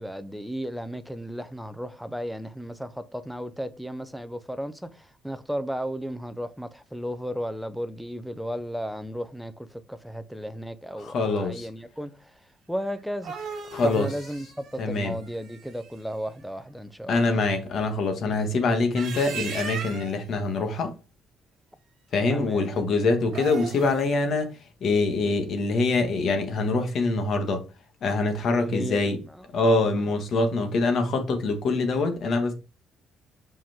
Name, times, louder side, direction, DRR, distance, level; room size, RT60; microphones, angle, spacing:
voice 1, 0.0-12.3 12.7-13.3 13.8-17.4 22.3-22.6 28.5-29.4 30.0-30.1, equal, ahead, 0.6 m, -34 dB
voice 2, 11.0-11.7 13.7-14.1 14.8-15.2 17.1-20.9 22.1-24.5 24.8-27.6 28.0-29.2 29.5-32.5, left 3 dB, 50° left, 1.5 m, -24 dB
sound 1, 13.0-16.0 18.7-20.2 23.2-24.1, right 6 dB, 60° right, 2.4 m, -38 dB
5.7 x 5.2 x 3.6 m
cardioid pair, 150°, 0 cm